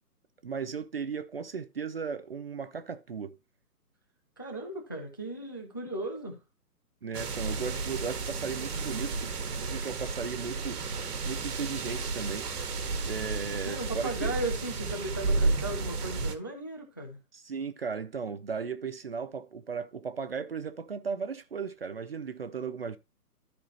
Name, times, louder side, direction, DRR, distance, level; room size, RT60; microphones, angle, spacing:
voice 1, 0.4-3.4 7.0-10.8 11.2-12.5 13.0-14.4 17.3-23.0, right 6 dB, 40° right, 0.6 m, -36 dB
voice 2, 4.4-6.4 13.6-17.2, right 2 dB, 15° left, 0.5 m, -36 dB
sound 1, 7.1-16.4, right 3 dB, 70° right, 1.7 m, -32 dB
13.5 x 4.7 x 2.9 m
hypercardioid pair, 155°, 48 cm